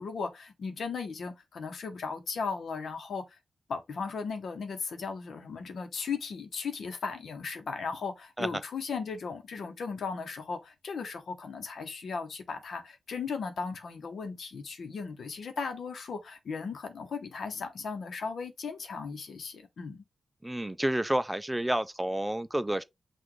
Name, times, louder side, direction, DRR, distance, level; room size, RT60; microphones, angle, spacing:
voice 1, 0.0-3.4 3.7-20.0, left 5 dB, 80° left, 0.9 m, -36 dB
voice 2, 20.4-22.8, right 1 dB, 10° right, 0.3 m, -29 dB
5.9 x 2.4 x 3.1 m
wide cardioid pair, 95°, 0 cm